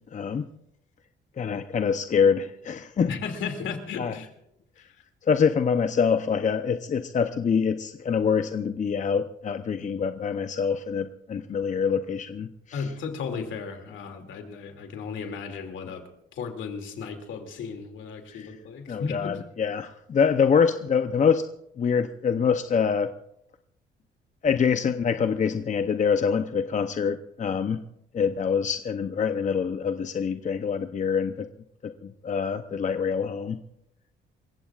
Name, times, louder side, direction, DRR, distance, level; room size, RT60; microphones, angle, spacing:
voice 1, 0.1-0.4 1.4-3.2 4.0-4.1 5.3-12.9 18.3-18.6 18.9-21.5 21.8-23.1 24.4-27.8 28.1-31.5 31.8-33.6, left 6 dB, 40° left, 8 dB, 0.7 m, -25 dB
voice 2, 3.1-4.3 12.7-16.0 16.3-19.4, left 5 dB, 75° left, 4 dB, 2.6 m, -35 dB
28.0 x 15.5 x 2.5 m, 0.79 s
cardioid pair, 90°, 20 cm